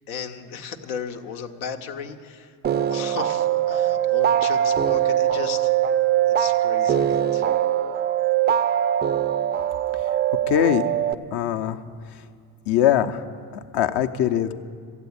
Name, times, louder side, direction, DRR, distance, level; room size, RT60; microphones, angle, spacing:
voice 1, 0.1-2.5 2.9-5.7 6.3-7.4, left 6 dB, 75° left, 5 dB, 1.1 m, -35 dB
sound 1, 2.6-11.1, right 10 dB, 20° right, 0.4 m, -22 dB
voice 2, 10.5-10.9 11.3-11.8 12.7-13.2 13.5-14.5, left 10 dB, 55° left, 7 dB, 0.9 m, -21 dB
14.0 x 8.3 x 8.7 m, 2.1 s
hypercardioid pair, 60°, 49 cm